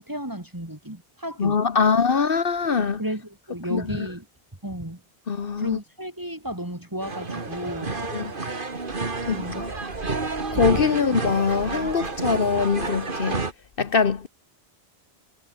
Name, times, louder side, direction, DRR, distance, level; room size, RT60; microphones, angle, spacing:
voice 1, 0.0-1.6 2.8-4.3 4.6-5.0 5.6-8.0 9.3-9.7, right 1 dB, 20° right, 2.6 m, -33 dB
voice 2, 1.4-3.0 3.7-3.8 5.3-5.8 8.1-8.2 9.3-9.7 10.5-13.4 13.8-14.3, left 5 dB, 60° left, 1.3 m, -23 dB
sound 1, 7.0-13.5, right 3 dB, 55° right, 2.3 m, -30 dB
omnidirectional pair, 1.1 m